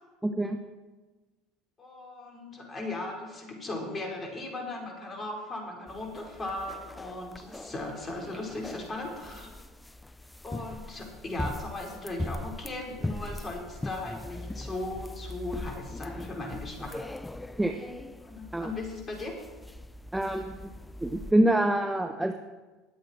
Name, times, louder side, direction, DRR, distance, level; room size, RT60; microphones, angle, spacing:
voice 1, 0.2-0.6 17.6-17.7 18.5-18.7 20.1-20.7 21.0-22.3, right 1 dB, 10° right, 6 dB, 1.0 m, -26 dB
voice 2, 1.8-9.5 10.4-17.1 18.2-19.3, left 2 dB, 25° left, 0 dB, 4.6 m, -37 dB
sound 1, 5.9-21.3, left 2 dB, 10° left, 0.6 m, -40 dB
21.5 x 8.1 x 4.5 m, 1.2 s
hypercardioid pair, 80°, 0 cm